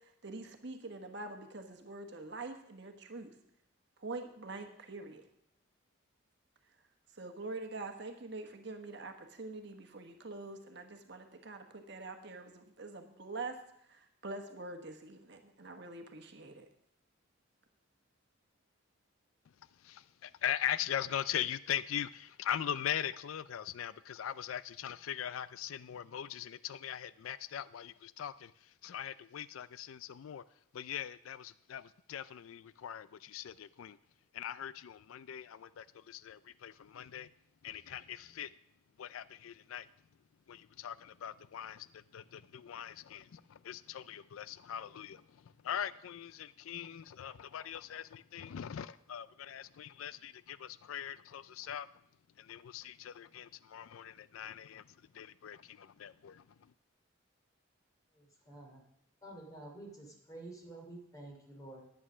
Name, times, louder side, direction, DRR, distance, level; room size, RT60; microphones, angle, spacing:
voice 1, 0.0-3.3 4.0-5.2 7.2-13.6 13.9-16.6, right 3 dB, 55° right, 5 dB, 1.3 m, -45 dB
voice 2, 19.8-28.5 28.8-30.4 30.7-34.0 34.3-37.3 37.6-38.5 39.0-39.9 40.5-45.2 45.6-51.9 52.4-54.8 55.1-56.4, left 10 dB, 85° left, 17 dB, 0.4 m, -41 dB
voice 3, 58.1-58.8 59.2-61.8, right 2 dB, 20° left, 0 dB, 2.8 m, -50 dB
11.0 x 9.3 x 6.1 m, 0.75 s
head